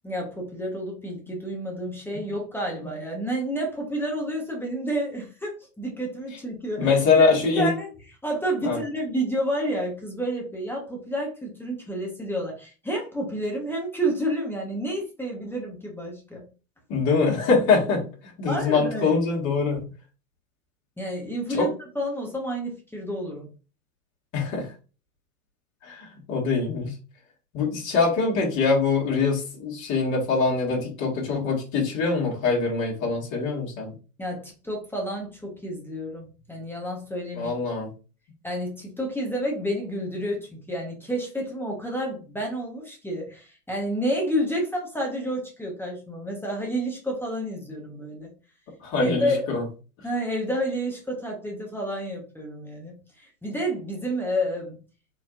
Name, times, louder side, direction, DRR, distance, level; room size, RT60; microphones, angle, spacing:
voice 1, 0.0-7.9 8.2-16.4 18.5-19.2 21.0-21.7 21.9-23.5 34.2-37.5 38.4-48.3 48.9-49.5 50.0-54.8, equal, 5° left, -1 dB, 1.1 m, -30 dB
voice 2, 6.8-7.7 8.6-8.8 16.9-19.8 21.5-21.7 24.3-24.7 25.8-26.9 27.5-33.9 37.4-37.9 48.8-49.6, left 4 dB, 35° left, -3 dB, 1.9 m, -23 dB
4.6 x 3.4 x 2.5 m, 0.33 s
hypercardioid pair, 105°, 47 cm